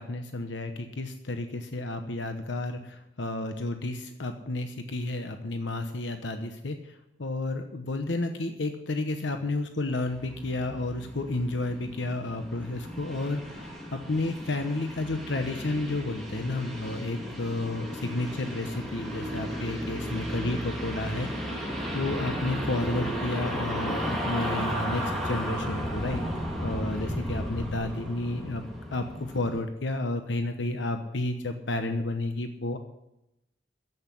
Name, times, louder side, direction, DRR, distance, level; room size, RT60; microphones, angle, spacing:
voice 1, 0.0-21.6 21.9-28.6 28.9-32.8, left 2 dB, 85° left, 7 dB, 1.0 m, -31 dB
sound 1, 10.0-29.6, equal, ahead, 2.3 m, -34 dB
11.0 x 8.2 x 9.8 m, 0.88 s
head